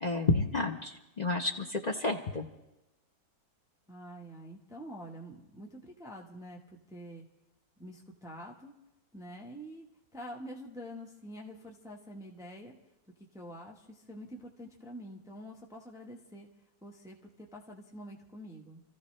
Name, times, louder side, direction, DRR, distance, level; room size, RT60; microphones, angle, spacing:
voice 1, 0.0-2.5, left 3 dB, 45° left, 4 dB, 0.5 m, -30 dB
voice 2, 3.9-6.6 6.9-7.3 7.8-8.8 9.1-9.9 10.1-12.7 13.3-16.5 16.8-18.8, equal, ahead, 0 dB, 1.2 m, -46 dB
27.0 x 15.0 x 3.3 m, 0.95 s
omnidirectional pair, 2.0 m